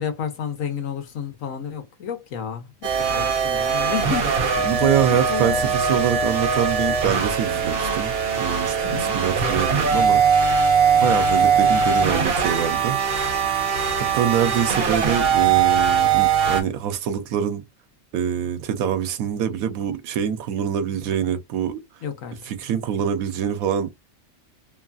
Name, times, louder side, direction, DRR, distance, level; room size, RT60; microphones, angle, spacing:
voice 1, 0.0-5.7 8.8-9.2 10.9-11.2 22.0-22.5, left 7 dB, 75° left, 1.2 m, -31 dB
sound 1, 2.8-16.6, right 6 dB, 50° right, 0.9 m, -21 dB
voice 2, 4.6-10.2 11.0-13.0 14.0-17.6 18.1-21.8 22.5-23.9, right 9 dB, 85° right, 1.1 m, -25 dB
2.9 x 2.3 x 2.4 m
omnidirectional pair, 1.4 m